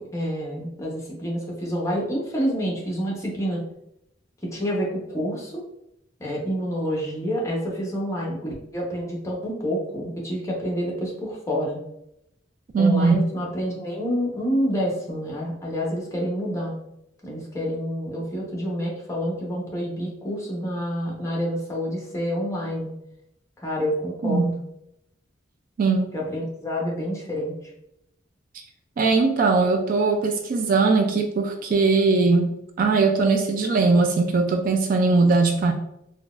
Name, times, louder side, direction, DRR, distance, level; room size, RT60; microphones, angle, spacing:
voice 1, 0.1-3.6 4.5-5.6 6.2-11.8 12.8-16.8 17.2-22.9 23.6-24.5 26.1-27.5, equal, 15° left, -3 dB, 0.8 m, -28 dB
voice 2, 12.7-13.2 24.2-24.6 25.8-26.1 29.0-32.5 32.8-35.7, right 4 dB, 45° right, 4 dB, 0.3 m, -20 dB
3.9 x 2.2 x 2.4 m, 0.80 s
head